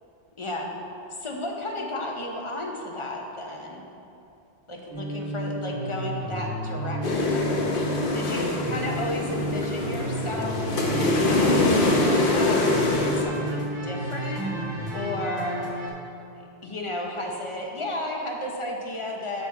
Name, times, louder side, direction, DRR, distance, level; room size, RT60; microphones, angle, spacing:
voice 1, 0.4-0.7 1.2-3.8 4.7-7.6 8.1-10.6 11.3-14.5 14.9-15.7 16.6-19.5, left 1 dB, 30° left, -1 dB, 0.8 m, -33 dB
sound 1, 4.9-15.9, right 1 dB, 85° right, 1.6 m, -32 dB
sound 2, 7.0-13.2, left 2 dB, 55° left, 1.0 m, -24 dB
6.5 x 6.1 x 4.6 m, 2.8 s
omnidirectional pair, 1.1 m